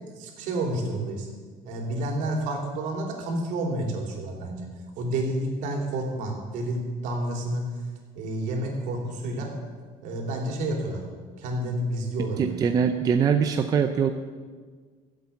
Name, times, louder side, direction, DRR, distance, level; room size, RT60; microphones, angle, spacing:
voice 1, 0.1-1.3 1.6-4.6 5.0-7.6 8.1-9.5 10.0-11.0 11.4-12.6, right 1 dB, 60° right, 1 dB, 3.5 m, -30 dB
voice 2, 12.4-14.1, right 7 dB, 25° right, 6 dB, 0.6 m, -22 dB
15.5 x 8.2 x 8.6 m, 1.5 s
cardioid pair, 170°, 15 cm